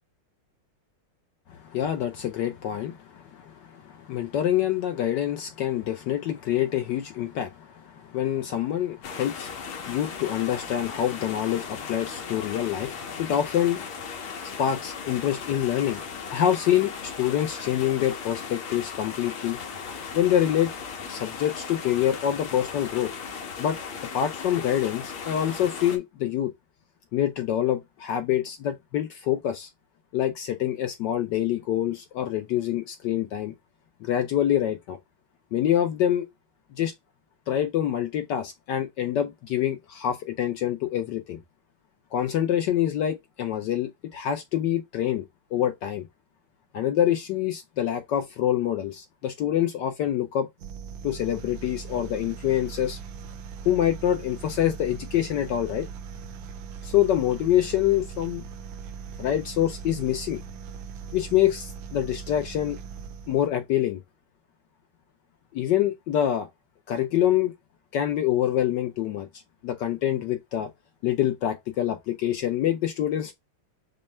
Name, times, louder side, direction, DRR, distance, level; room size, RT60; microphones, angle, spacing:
voice 1, 1.7-13.8 14.6-16.0 16.3-19.6 20.1-20.7 21.1-23.1 23.6-23.8 24.1-26.5 27.1-29.7 30.1-33.5 34.0-35.0 35.5-36.3 36.7-36.9 37.5-41.4 42.1-45.2 45.5-46.1 46.7-50.5 51.0-53.0 53.6-55.9 56.8-58.4 59.2-60.4 61.1-62.8 63.3-64.0 65.5-66.5 66.9-67.5 67.9-69.3 69.6-70.7 71.0-73.3, left 11 dB, 70° left, 1.1 m, -26 dB
sound 1, 9.0-26.0, left 6 dB, 85° left, 1.9 m, -37 dB
sound 2, 50.6-63.6, right 6 dB, 85° right, 1.6 m, -40 dB
5.3 x 2.2 x 4.3 m
omnidirectional pair, 2.3 m